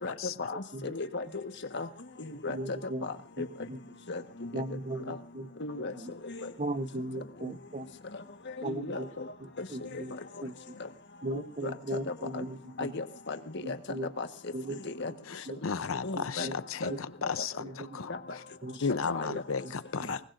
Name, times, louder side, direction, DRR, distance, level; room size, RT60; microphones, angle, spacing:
voice 1, 0.4-1.4 1.7-1.9 2.2-2.6 3.0-3.5 4.1-4.5 5.1-5.2 5.6-5.9 6.2-6.4 8.6-9.3 9.6-9.7 11.6-11.7 12.1-12.4 12.8-13.4 13.7-13.8 14.2-14.3 14.7-15.1 15.6-15.7 16.0-16.5 16.8-16.9 17.2-17.3 18.1-18.2 19.1-19.3 20.1-20.2, left 3 dB, 60° left, 7 dB, 1.5 m, -36 dB
voice 2, 2.5-3.1 3.4-3.8 4.5-5.5 5.9-6.1 6.6-7.9 8.6-9.1 9.4-10.2 10.4-10.5 11.2-12.9 13.6-14.1 14.5-14.8 15.5-15.6 16.2-16.5 16.9-17.0 17.6-17.9 18.6-18.8 19.3-19.4 20.0-20.1, right 1 dB, 35° right, 11 dB, 1.0 m, -37 dB
voice 3, 10.4-10.8 15.2-18.4 18.8-20.2, left 5 dB, 80° left, 14 dB, 0.7 m, -35 dB
24.5 x 20.0 x 2.6 m, 0.33 s
head